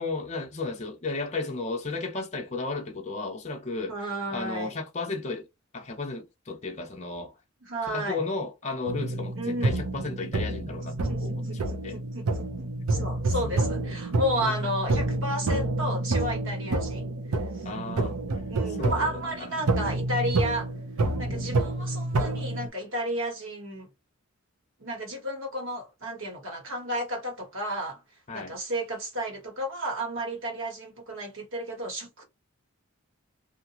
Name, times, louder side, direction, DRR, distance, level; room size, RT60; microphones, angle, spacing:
voice 1, 0.0-3.9 4.3-5.5 5.7-7.3 7.8-12.0 13.4-13.5 14.4-14.7 17.6-18.2 18.7-19.7 21.3-21.5 28.3-28.5, left 3 dB, 30° left, 0.6 m, -34 dB
voice 2, 3.9-4.7 7.6-8.2 9.4-9.8 11.0-17.0 17.3-17.7 18.5-20.7 21.2-23.9 24.8-28.0 28.3-32.2, equal, 60° right, 1.3 m, -32 dB
sound 1, 8.9-22.7, right 2 dB, 90° right, 0.7 m, -28 dB
2.8 x 2.5 x 2.8 m
head